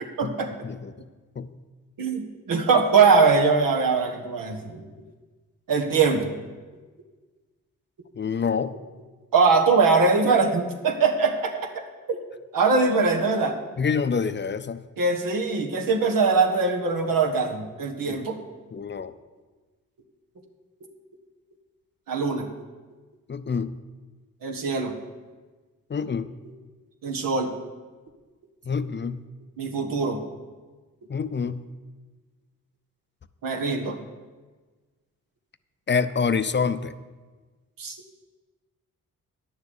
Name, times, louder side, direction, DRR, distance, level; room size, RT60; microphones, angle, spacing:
voice 1, 0.2-0.5 2.0-4.8 5.7-6.3 9.3-12.2 12.5-13.6 15.0-18.4 22.1-22.5 24.4-24.9 27.0-27.5 29.6-30.2 33.4-34.0 37.8-38.0, right 4 dB, 75° right, 3 dB, 1.6 m, -22 dB
voice 2, 8.1-8.8 13.8-14.9 18.1-18.2 18.7-19.1 23.3-23.7 25.9-26.3 28.7-29.2 31.1-31.7 35.9-36.9, left 5 dB, 35° left, 12 dB, 0.6 m, -26 dB
9.7 x 7.1 x 8.1 m, 1.3 s
cardioid pair, 65°, 33 cm